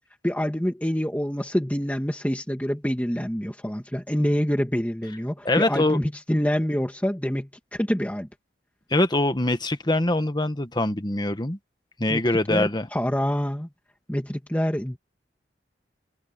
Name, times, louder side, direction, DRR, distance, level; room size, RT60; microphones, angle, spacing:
voice 1, 0.2-8.3 12.1-12.2 12.5-13.7 14.1-15.0, equal, 10° left, 1.9 m, -26 dB
voice 2, 5.4-6.0 8.9-11.6 12.0-12.9, left 1 dB, 25° left, 1.5 m, -23 dB
head